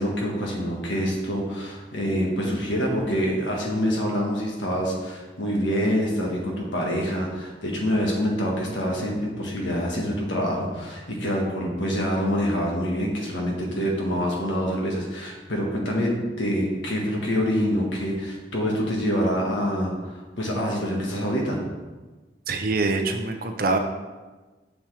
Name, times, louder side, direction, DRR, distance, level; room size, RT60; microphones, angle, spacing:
voice 1, 0.0-21.6, equal, 75° left, -1 dB, 1.5 m, -26 dB
voice 2, 22.5-23.8, right 3 dB, 50° right, 5 dB, 0.6 m, -24 dB
6.9 x 6.1 x 3.4 m, 1.3 s
head